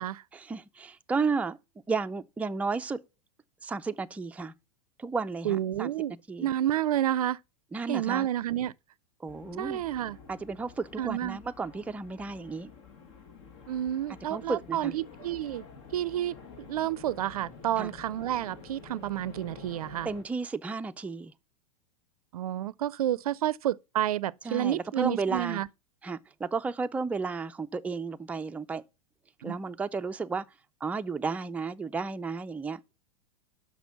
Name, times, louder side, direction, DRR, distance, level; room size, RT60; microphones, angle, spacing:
voice 1, 0.3-1.6 1.9-3.0 3.6-4.5 5.0-5.9 6.3-6.5 7.7-8.3 9.2-9.8 10.3-12.7 14.3-14.9 17.8-17.9 20.0-21.3 24.4-25.6 26.0-28.8 29.4-30.4 30.8-32.8, right 4 dB, 5° right, 0.4 m, -33 dB
voice 2, 5.4-6.1 6.4-7.4 7.9-8.7 9.6-10.2 11.0-11.4 13.7-15.6 15.9-20.1 22.3-25.7 29.4-29.6, right 12 dB, 80° right, 0.4 m, -30 dB
sound 1, 9.3-20.2, left 5 dB, 55° left, 2.0 m, -49 dB
6.0 x 5.8 x 6.9 m
hypercardioid pair, 105°, 19 cm